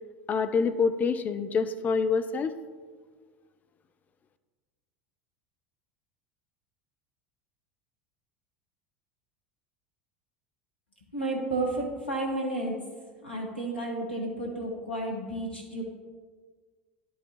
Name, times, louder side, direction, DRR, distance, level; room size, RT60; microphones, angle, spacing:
voice 1, 0.3-2.5, left 5 dB, 30° left, 10 dB, 0.5 m, -26 dB
voice 2, 11.1-12.8 13.2-15.8, right 2 dB, 85° left, -2 dB, 1.2 m, -32 dB
11.5 x 4.6 x 3.0 m, 1.5 s
figure-of-eight pair, 75°, 6 cm